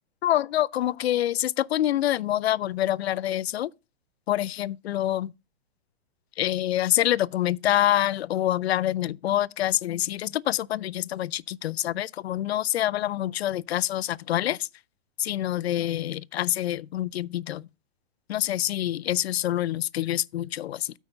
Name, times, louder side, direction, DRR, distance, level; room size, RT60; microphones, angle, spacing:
voice 1, 0.2-3.7 4.3-5.3 6.4-14.7 15.2-17.7 18.3-20.9, left 13 dB, 90° left, 0.5 m, -26 dB
8.4 x 4.7 x 6.6 m
hypercardioid pair, 150°, 31 cm